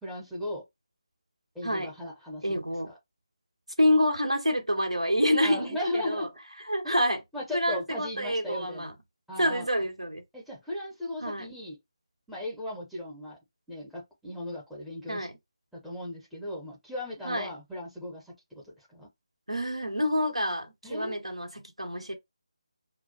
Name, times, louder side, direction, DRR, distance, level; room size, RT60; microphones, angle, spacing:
voice 1, 0.0-0.6 1.5-2.4 5.4-6.3 6.8-7.0 7.3-9.0 9.3-9.7 10.3-11.8 12.3-13.4 13.7-15.3 15.7-18.2 18.5-18.6 18.9-19.1 20.8-21.2, left 1 dB, ahead, 0.7 m, -36 dB
voice 2, 1.6-1.9 2.4-2.9 3.8-6.3 6.7-7.2 7.5-8.9 9.4-10.2 11.2-11.5 15.1-15.4 17.2-17.5 19.5-22.1, equal, 90° right, 1.0 m, -27 dB
2.2 x 2.2 x 2.6 m
figure-of-eight pair, 155°, 3 cm